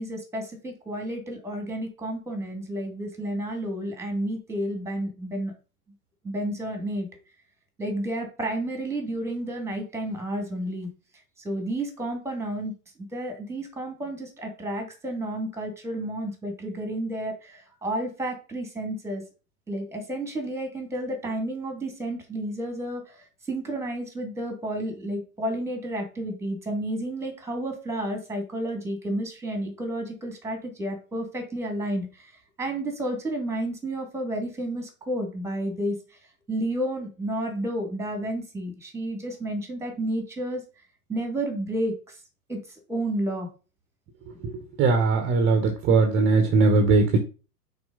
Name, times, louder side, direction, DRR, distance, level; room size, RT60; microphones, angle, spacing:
voice 1, 0.0-5.5 6.2-7.1 7.8-10.9 11.4-12.7 13.1-19.2 19.7-32.3 32.6-36.0 36.5-40.6 41.1-41.9 42.5-42.6 42.9-43.5, right 1 dB, 5° right, 4 dB, 2.0 m, -31 dB
voice 2, 44.8-47.2, right 3 dB, 25° right, 6 dB, 1.1 m, -20 dB
6.1 x 4.4 x 3.9 m, 0.34 s
figure-of-eight pair, 105°, 46 cm